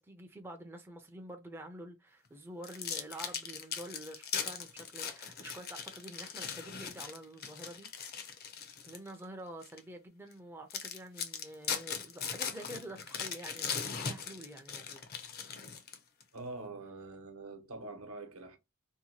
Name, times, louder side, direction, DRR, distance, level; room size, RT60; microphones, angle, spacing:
voice 1, 0.0-7.9 8.8-15.0, right 1 dB, 10° right, 0.4 m, -48 dB
sound 1, 2.6-9.1 9.6-9.8 10.3-10.4 10.7-16.2, left 6 dB, 45° left, 0.6 m, -39 dB
voice 2, 16.3-18.6, right 3 dB, 75° right, 0.9 m, -45 dB
2.8 x 2.2 x 2.7 m
head